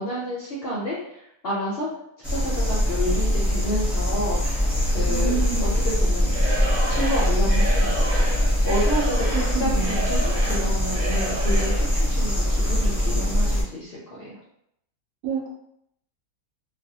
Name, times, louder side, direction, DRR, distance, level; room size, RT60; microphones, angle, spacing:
voice 1, 0.0-1.9 2.2-6.4 6.9-14.4, equal, 60° left, -6 dB, 0.6 m, -30 dB
sound 1, 2.2-13.6, equal, ahead, 0.4 m, -22 dB
Alarm, 4.7-12.4, left 2 dB, 55° right, 1.0 m, -41 dB
voice 2, 5.0-5.8 8.9-9.1 9.3-10.1 15.2-15.5, right 5 dB, 80° right, -2 dB, 1.1 m, -29 dB
Singing / Crowd, 6.2-11.9, right 1 dB, 30° right, 0.7 m, -32 dB
2.5 x 2.0 x 2.7 m, 0.76 s
omnidirectional pair, 1.5 m